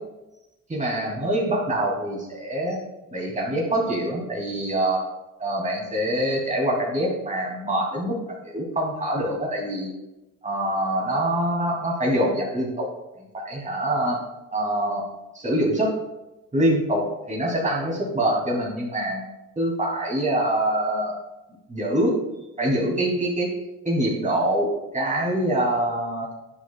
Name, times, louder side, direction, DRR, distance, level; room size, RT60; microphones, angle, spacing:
voice 1, 0.7-2.8 3.1-5.1 5.4-8.2 8.4-9.9 10.4-12.9 13.1-14.2 14.5-15.1 15.3-16.0 16.5-19.3 19.6-21.2 21.7-22.2 22.6-23.5 23.8-26.3, right 1 dB, 25° right, -3 dB, 3.0 m, -24 dB
10.5 x 7.1 x 2.4 m, 0.97 s
cardioid pair, 90°, 30 cm